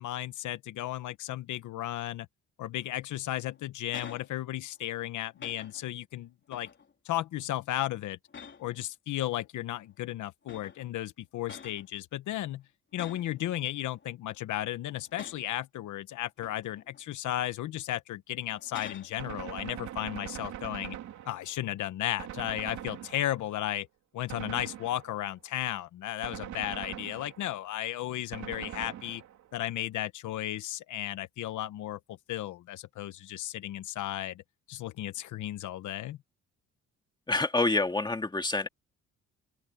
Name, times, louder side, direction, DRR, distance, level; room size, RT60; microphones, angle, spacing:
voice 1, 0.0-2.3 2.6-6.7 7.0-8.2 8.6-12.6 12.9-21.0 21.2-23.9 24.1-29.2 29.5-34.4 34.7-36.2, left 13 dB, 80° left, 1.1 m, -34 dB
sound 1, 3.4-4.3 4.7-5.0 5.4-5.9 6.5-6.9 7.3-7.7 8.3-8.9 9.8-9.9 10.4-10.9 11.4-11.9 12.9-13.4 13.8-14.4 15.0-15.6 16.2-17.0 17.4-17.6 18.5-19.2 22.6-23.0, left 6 dB, 40° left, 3.4 m, -48 dB
Gunshot gunfire, 19.2-21.7 22.2-23.6 24.3-25.3 26.2-27.6 28.3-29.6, right 11 dB, 75° right, 2.9 m, -42 dB
voice 2, 37.3-38.7, left 2 dB, 15° left, 2.1 m, -27 dB
open air
cardioid pair, 90°, 30 cm